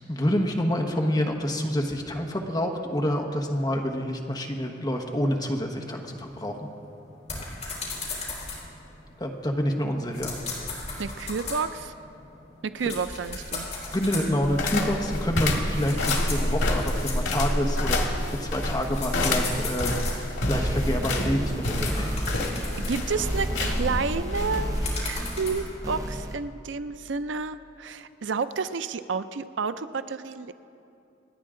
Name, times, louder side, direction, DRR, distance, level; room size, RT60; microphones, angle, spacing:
voice 1, 0.1-6.7 7.3-7.4 9.2-10.4 13.9-18.1 18.4-22.2, equal, 20° left, 2 dB, 1.2 m, -28 dB
sound 1, 5.8-17.6 18.2-20.6 21.2-25.7, left 3 dB, 35° left, 4.0 m, -38 dB
voice 2, 11.0-11.9 12.6-13.7 22.2-22.4 22.8-24.7 25.0-30.5, right 5 dB, 75° right, 12 dB, 0.5 m, -30 dB
sound 2, 14.4-25.7, left 1 dB, 90° left, 1.9 m, -28 dB
sound 3, 20.5-26.4, right 1 dB, 20° right, 0.8 m, -32 dB
28.0 x 9.5 x 3.8 m, 2.8 s
head